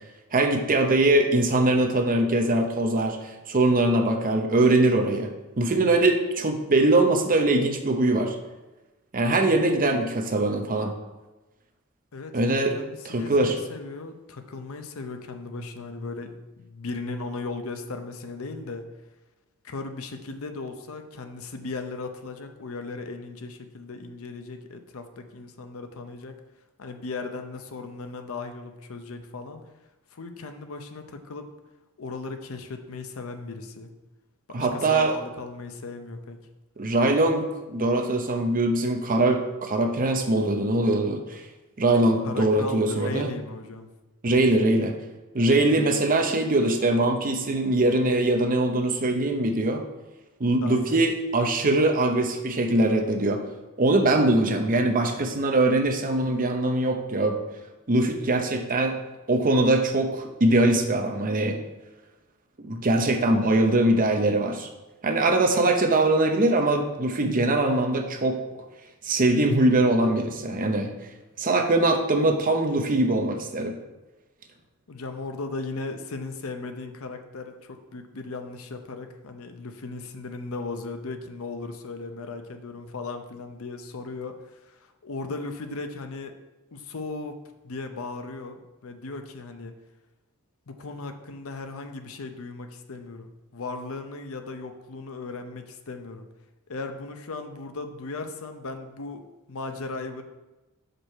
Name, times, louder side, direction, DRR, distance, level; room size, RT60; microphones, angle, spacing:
voice 1, 0.3-5.3 5.6-8.4 9.1-10.9 12.3-12.8 13.0-13.6 34.5-35.2 36.8-41.4 41.8-43.3 44.2-44.9 45.3-49.8 50.4-53.4 53.8-57.4 57.9-59.0 59.3-61.6 62.6-64.7 65.0-68.4 69.0-70.9 71.4-73.7, right 2 dB, 40° right, 4 dB, 0.8 m, -22 dB
voice 2, 12.1-18.8 19.6-26.4 26.8-29.6 30.1-31.5 32.0-33.9 34.7-36.4 42.2-43.9 50.6-51.0 74.9-86.3 86.7-87.4 87.6-89.7 90.7-96.3 96.7-100.2, left 3 dB, 70° left, 7 dB, 0.7 m, -37 dB
6.2 x 5.2 x 4.3 m, 1.1 s
head